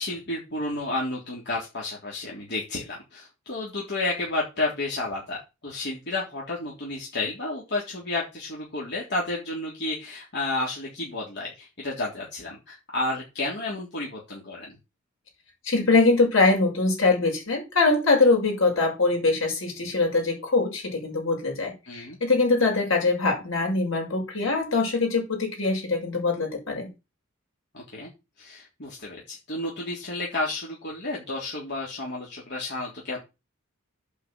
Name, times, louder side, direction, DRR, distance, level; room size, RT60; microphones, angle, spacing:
voice 1, 0.0-14.8 21.9-22.2 27.7-28.1 28.4-33.2, left 2 dB, 55° left, 3.7 m, -31 dB
voice 2, 15.6-26.9, left 3 dB, 75° left, 6.3 m, -23 dB
8.5 x 5.8 x 7.8 m
head